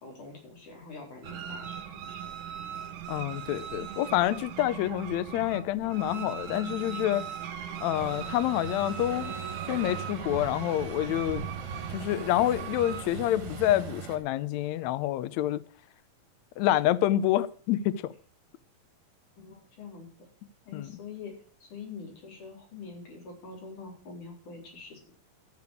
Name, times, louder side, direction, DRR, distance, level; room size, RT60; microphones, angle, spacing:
voice 1, 0.0-2.3 19.4-20.1 20.7-21.3 21.6-25.1, left 4 dB, 60° left, 5.5 m, -45 dB
sound 1, 1.2-13.0, right 8 dB, 75° right, 2.7 m, -39 dB
voice 2, 3.1-7.2 7.8-9.3 9.7-11.4 11.9-15.6 16.6-18.1 20.7-20.9, left 13 dB, 90° left, 1.6 m, -27 dB
Truck, 7.9-14.2, right 6 dB, 60° right, 3.3 m, -39 dB
13.0 x 6.9 x 6.4 m
omnidirectional pair, 4.0 m